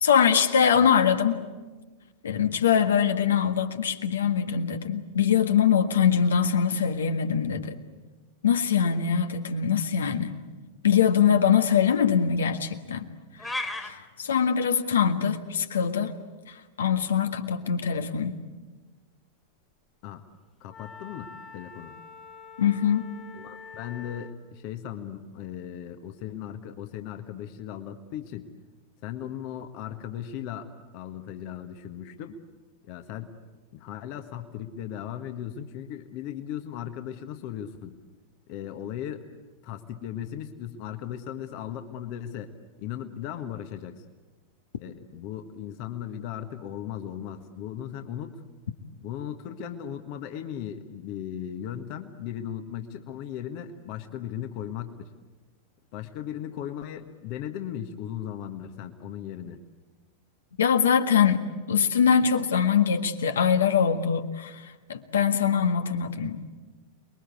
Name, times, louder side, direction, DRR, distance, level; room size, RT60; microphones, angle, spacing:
voice 1, 0.0-1.4 2.2-7.7 8.4-10.4 10.8-13.1 13.4-16.1 16.8-18.4 22.6-23.1 60.6-64.6 64.9-66.5, left 7 dB, 65° left, 8 dB, 1.7 m, -23 dB
sound 1, 13.4-13.9, left 2 dB, 10° left, 2.1 m, -31 dB
voice 2, 20.6-22.0 23.3-28.5 29.0-32.4 32.8-33.3 33.7-38.0 38.5-39.3 39.6-42.5 42.8-44.0 44.8-48.4 49.0-55.1 55.9-59.6, left 10 dB, 45° left, 7 dB, 1.5 m, -37 dB
Wind instrument woodwind instrument, 20.7-24.4, left 5 dB, 25° left, 1.6 m, -46 dB
28.5 x 22.0 x 8.4 m, 1.3 s
figure-of-eight pair, 90°, 0 cm